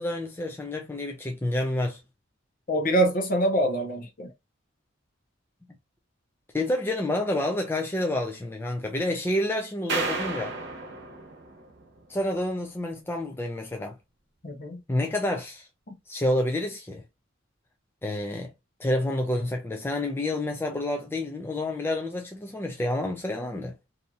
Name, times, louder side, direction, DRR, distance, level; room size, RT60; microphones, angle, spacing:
voice 1, 0.0-2.0 6.5-10.5 12.1-13.9 14.9-15.7 16.1-17.0 18.0-18.5 18.8-23.7, left 1 dB, 10° left, 0.4 m, -29 dB
voice 2, 2.7-4.3 14.4-14.8 15.9-16.0, right 1 dB, 45° left, 0.7 m, -25 dB
sound 1, 9.9-12.2, right 3 dB, 60° right, 0.9 m, -33 dB
2.7 x 2.7 x 2.3 m
head